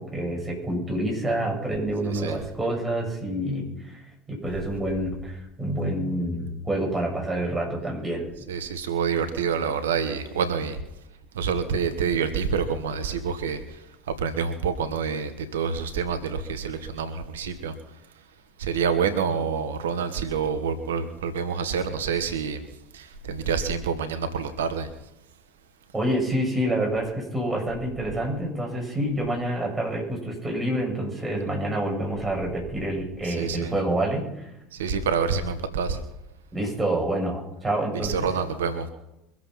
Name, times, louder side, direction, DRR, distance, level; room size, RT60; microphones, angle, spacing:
voice 1, 0.0-4.0 4.3-8.3 25.9-34.5 36.5-38.4, right 1 dB, 15° right, -1 dB, 7.4 m, -27 dB
voice 2, 8.5-10.8 11.4-13.6 14.2-17.7 18.6-22.6 22.9-24.9 33.4-33.7 34.8-36.0 38.1-38.9, right 6 dB, 80° right, 10 dB, 1.3 m, -27 dB
23.5 x 8.0 x 5.8 m, 0.88 s
hypercardioid pair, 75°, 0 cm